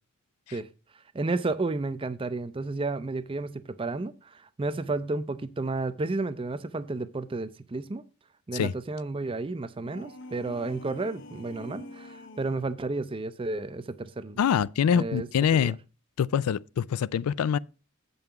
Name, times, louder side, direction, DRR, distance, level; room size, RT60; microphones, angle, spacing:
voice 1, 1.1-8.0 8.5-14.4 14.9-15.7, right 3 dB, 25° right, 0.4 m, -32 dB
sound 1, 9.8-12.7, left 1 dB, 55° left, 0.7 m, -45 dB
voice 2, 14.4-15.8 16.2-17.6, left 8 dB, 90° left, 0.3 m, -24 dB
7.8 x 5.5 x 5.8 m
head